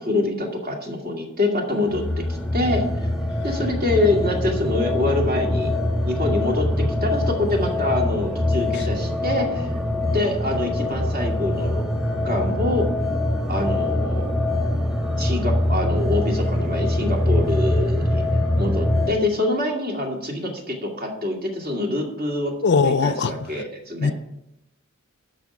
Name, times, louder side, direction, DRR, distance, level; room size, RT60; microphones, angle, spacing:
voice 1, 0.0-2.8 3.4-5.7 6.0-9.7 10.1-11.8 12.2-12.9 13.5-14.5 15.2-18.2 18.6-22.5 22.8-24.1, left 2 dB, 40° right, 2.3 m, -25 dB
sound 1, 1.7-19.1, left 1 dB, 5° right, 1.4 m, -23 dB
voice 2, 22.6-23.3 24.0-24.1, left 4 dB, 50° left, 0.5 m, -19 dB
12.5 x 4.8 x 7.1 m
head